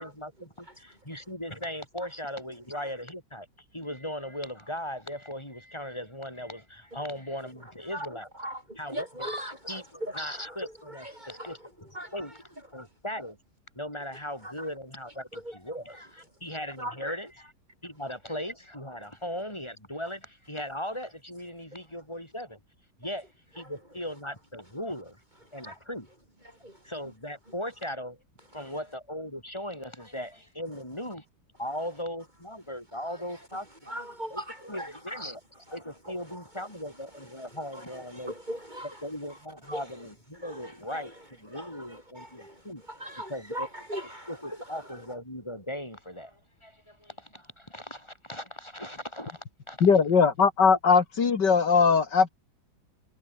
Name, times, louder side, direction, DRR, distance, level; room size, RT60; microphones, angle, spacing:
voice 1, 0.0-3.5 3.7-8.3 8.7-9.4 9.6-11.6 12.1-12.4 12.7-13.4 13.7-17.5 17.8-22.6 23.0-25.2 25.5-26.1 26.8-28.2 28.5-31.2 31.6-33.7 34.3-38.3 39.0-41.1 41.4-42.8 43.3-43.7 44.3-49.9, equal, 15° left, 7.5 m, -38 dB
voice 2, 7.9-9.6 10.0-10.2 10.9-11.7 11.9-12.3 14.4-14.7 15.3-15.8 16.8-17.2 23.0-23.1 25.6-25.8 26.4-26.8 28.5-28.7 33.1-33.4 33.9-34.9 36.0-36.4 37.1-39.0 39.3-39.4 39.6-40.0 40.3-45.0, equal, 25° right, 5.6 m, -40 dB
voice 3, 49.8-52.3, left 5 dB, 75° left, 2.7 m, -20 dB
omnidirectional pair, 1.9 m